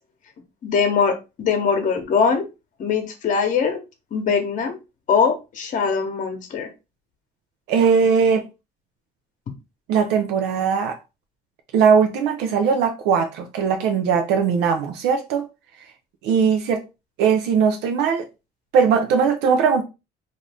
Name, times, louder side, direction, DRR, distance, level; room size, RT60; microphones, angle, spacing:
voice 1, 0.6-2.4 2.8-3.8 4.1-4.8 5.1-6.7, left 5 dB, 50° left, 0.9 m, -21 dB
voice 2, 7.7-8.5 9.9-11.0 11.7-15.5 16.2-16.8 17.2-18.3 18.7-19.8, right 6 dB, 85° right, 0.5 m, -19 dB
2.6 x 2.5 x 3.4 m
cardioid pair, 110°, 17 cm